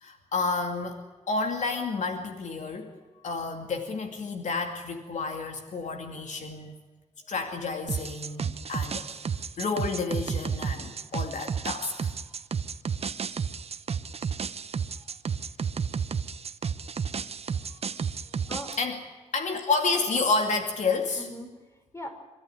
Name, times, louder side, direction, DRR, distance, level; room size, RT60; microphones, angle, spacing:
voice 1, 0.0-1.0 1.3-2.9 3.2-6.7 7.3-9.2 9.6-12.1 18.8-19.0 19.3-21.3, left 4 dB, 75° left, 5 dB, 2.5 m, -30 dB
sound 1, 7.9-18.8, right 6 dB, 55° right, 0.9 m, -32 dB
voice 2, 18.2-18.8 21.2-22.1, left 1 dB, 25° left, 4 dB, 5.1 m, -42 dB
25.0 x 13.5 x 10.0 m, 1.2 s
wide cardioid pair, 95°, 12 cm